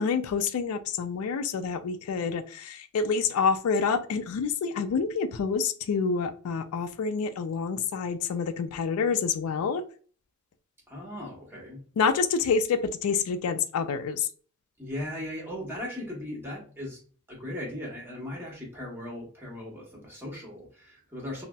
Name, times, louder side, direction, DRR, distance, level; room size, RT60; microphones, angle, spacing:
voice 1, 0.0-9.8 12.0-14.3, left 5 dB, 80° left, 0.3 m, -27 dB
voice 2, 10.9-11.8 14.8-17.0 17.3-21.4, left 1 dB, 10° right, 1.0 m, -38 dB
4.0 x 2.0 x 2.2 m
head